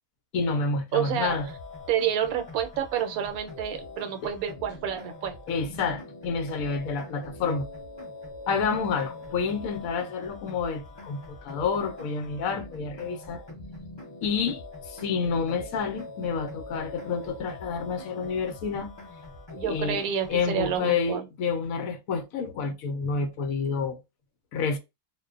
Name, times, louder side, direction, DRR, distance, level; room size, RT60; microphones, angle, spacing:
voice 1, 0.3-1.5 5.5-7.6 8.5-13.4 14.2-14.6 14.9-18.9 19.6-20.0 20.3-24.0 24.5-24.8, left 5 dB, 75° left, 1.0 m, -29 dB
voice 2, 0.9-1.4 1.9-5.4 19.5-21.3, right 9 dB, 75° right, 1.0 m, -29 dB
sound 1, 1.2-20.8, left 2 dB, 30° left, 0.5 m, -43 dB
2.5 x 2.1 x 2.3 m
omnidirectional pair, 1.6 m